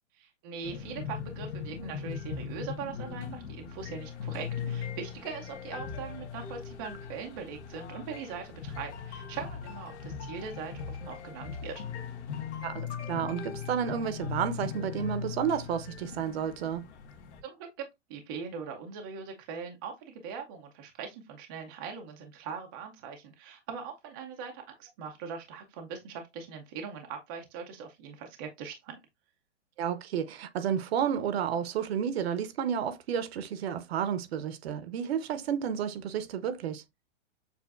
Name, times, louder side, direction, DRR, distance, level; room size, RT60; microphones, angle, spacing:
voice 1, 0.2-11.9 17.4-29.0, right 6 dB, 20° right, 0.4 m, -41 dB
sound 1, 0.6-17.4, left 7 dB, 60° left, 1.3 m, -39 dB
voice 2, 12.6-16.9 29.8-36.8, right 8 dB, 55° right, 0.8 m, -31 dB
6.9 x 2.4 x 2.4 m
hypercardioid pair, 150°, 37 cm